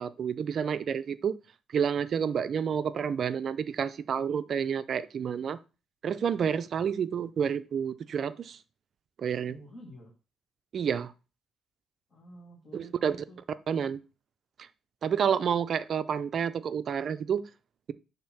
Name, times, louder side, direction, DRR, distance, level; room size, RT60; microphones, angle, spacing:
voice 1, 0.0-1.4 1.7-5.6 6.0-8.6 9.2-9.6 10.7-11.1 12.7-13.1 13.7-14.0 15.0-17.4, right 7 dB, 40° right, 0.4 m, -29 dB
voice 2, 9.3-10.1 12.1-13.4, equal, 35° left, 1.7 m, -50 dB
6.6 x 3.4 x 5.8 m
cardioid pair, 170°, 0 cm